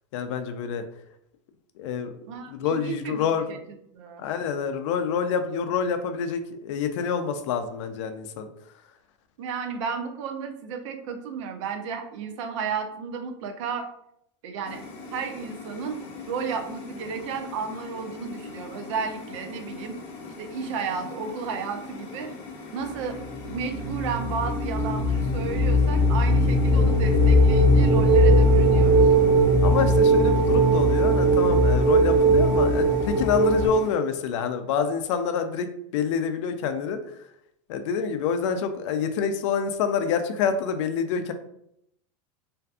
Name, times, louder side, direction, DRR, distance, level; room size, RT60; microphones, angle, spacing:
voice 1, 0.1-0.9 1.8-2.1 2.5-3.5 4.2-8.5 29.6-35.7 35.9-37.2 37.7-41.3, left 6 dB, 70° left, 8 dB, 0.4 m, -27 dB
voice 2, 2.3-4.2 9.4-13.9 14.4-14.8 15.1-16.0 16.3-19.9 20.4-22.3 22.7-29.1, right 5 dB, 70° right, 6 dB, 0.5 m, -33 dB
sound 1, 14.6-33.9, left 4 dB, 40° left, 0.7 m, -40 dB
sound 2, 23.1-33.7, right 1 dB, 20° right, 1.0 m, -19 dB
2.5 x 2.3 x 2.4 m, 0.74 s
supercardioid pair, 125°, 16 cm